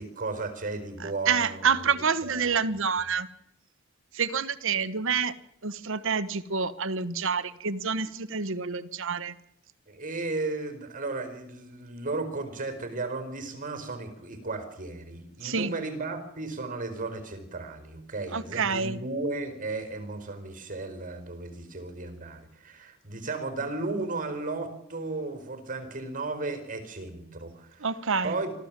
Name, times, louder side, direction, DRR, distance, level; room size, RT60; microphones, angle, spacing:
voice 1, 0.0-2.8 9.9-27.9 28.2-28.5, right 3 dB, 40° right, 9 dB, 4.6 m, -35 dB
voice 2, 1.0-3.3 4.1-5.3 5.6-9.3 15.4-15.7 18.3-19.0 27.8-28.3, right 5 dB, 65° right, 15 dB, 1.2 m, -28 dB
25.0 x 15.0 x 7.5 m, 0.82 s
head